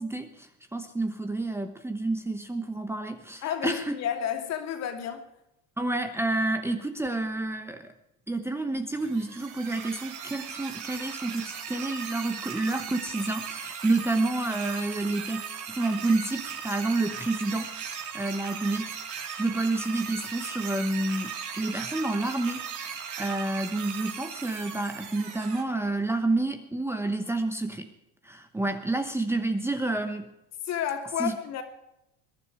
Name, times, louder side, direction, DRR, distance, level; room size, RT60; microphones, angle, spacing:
voice 1, 0.0-4.0 5.8-7.9 8.3-15.4 15.7-19.0 19.3-27.9 28.2-30.3 31.2-31.4, right 2 dB, 5° right, 1.0 m, -29 dB
voice 2, 3.4-5.3 30.6-31.6, left 9 dB, 50° left, 2.7 m, -31 dB
sound 1, 8.9-25.6, right 7 dB, 60° right, 4.3 m, -38 dB
21.5 x 11.0 x 4.9 m
supercardioid pair, 120°, 34 cm